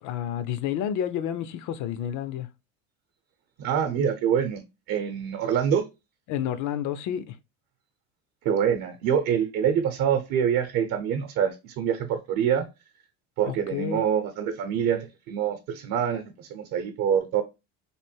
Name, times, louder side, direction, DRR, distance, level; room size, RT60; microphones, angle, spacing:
voice 1, 0.0-2.5 6.3-7.4 13.4-14.0, left 10 dB, 50° left, 0.6 m, -30 dB
voice 2, 3.6-4.6 4.9-5.9 8.4-12.7 13.4-17.4, right 8 dB, 50° right, 0.8 m, -25 dB
3.3 x 2.5 x 4.4 m
supercardioid pair, 125°, 38 cm